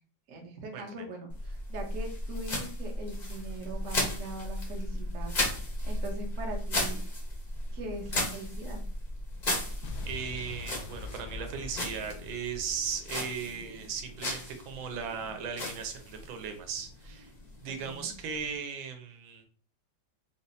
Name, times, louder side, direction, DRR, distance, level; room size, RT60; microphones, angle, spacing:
voice 1, 0.3-5.3 5.6-7.0 7.7-8.8 17.6-18.1, right 2 dB, 55° right, 1 dB, 0.9 m, -41 dB
sound 1, 1.3-18.6, left 1 dB, 55° left, 0.4 m, -36 dB
Explosion, 9.8-13.9, left 3 dB, 75° left, 0.9 m, -44 dB
voice 2, 10.1-17.3 17.6-19.4, right 6 dB, 90° right, 6 dB, 1.5 m, -37 dB
5.1 x 2.0 x 2.7 m, 0.42 s
omnidirectional pair, 2.1 m